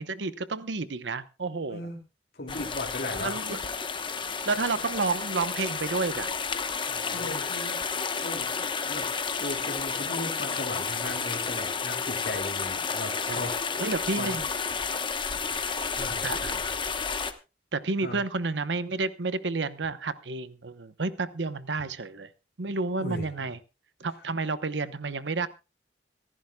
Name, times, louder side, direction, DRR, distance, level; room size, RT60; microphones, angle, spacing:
voice 1, 0.0-1.8 3.2-3.6 4.5-6.3 6.9-7.4 13.3-13.5 13.8-14.5 14.9-15.0 16.2-16.6 17.7-22.3 22.6-23.6 24.0-25.5, right 3 dB, 85° right, 0.9 m, -30 dB
voice 2, 2.3-3.6 7.1-9.1 9.4-13.5 13.8-14.3 16.0-16.2 18.0-18.2 23.0-23.5, left 2 dB, 60° left, 2.6 m, -37 dB
sound 1, 2.5-17.3, left 5 dB, 30° left, 1.0 m, -31 dB
25.5 x 11.5 x 2.3 m
head